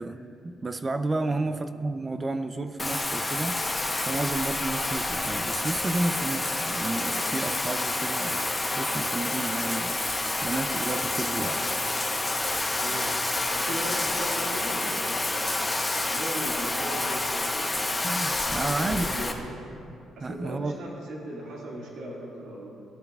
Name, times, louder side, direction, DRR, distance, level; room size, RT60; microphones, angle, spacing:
voice 1, 0.0-8.5 8.7-10.0 10.4-11.6 18.0-19.1 20.2-20.8, right 2 dB, 25° right, 10 dB, 0.4 m, -31 dB
Bathtub (filling or washing), 2.8-19.3, left 2 dB, 15° left, 0.9 m, -28 dB
voice 2, 11.4-11.8 12.8-13.1 13.5-17.7 18.4-19.6 20.2-22.7, right 1 dB, 80° right, -3 dB, 2.0 m, -39 dB
16.5 x 8.7 x 2.3 m, 2.6 s
cardioid pair, 90°, 0 cm